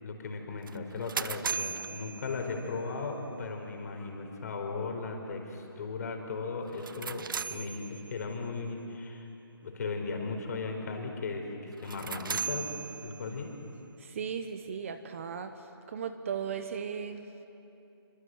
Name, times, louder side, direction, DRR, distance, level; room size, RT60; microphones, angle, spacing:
voice 1, 0.0-9.3 9.6-11.5 11.8-12.7 13.0-13.5, left 4 dB, 40° left, 3 dB, 4.5 m, -37 dB
sound 1, 0.7-2.9 6.7-8.4 11.7-13.5, right 6 dB, 55° right, 0.8 m, -38 dB
voice 2, 14.0-15.5 15.9-17.5, right 7 dB, 30° right, 9 dB, 1.1 m, -37 dB
27.5 x 24.5 x 8.0 m, 2.9 s
figure-of-eight pair, 160°, 13 cm